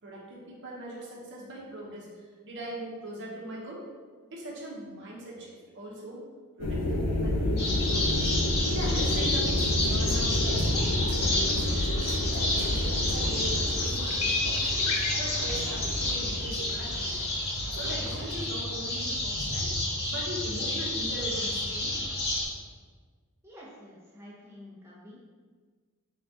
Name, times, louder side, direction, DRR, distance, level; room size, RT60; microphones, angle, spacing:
voice 1, 0.0-3.9 4.3-6.3 6.6-8.3 8.7-12.0 12.7-14.8 15.1-17.2 17.7-19.7 20.1-22.0, right 1 dB, 55° right, -3 dB, 0.8 m, -41 dB
sound 1, 6.6-17.1, left 1 dB, 90° left, 0.4 m, -30 dB
sound 2, 7.6-22.5, left 1 dB, 45° left, 0.8 m, -30 dB
sound 3, 8.8-18.3, right 1 dB, 90° right, 0.5 m, -40 dB
voice 2, 23.4-25.2, left 1 dB, 10° right, -7 dB, 0.7 m, -49 dB
4.7 x 2.2 x 2.7 m, 1.5 s
head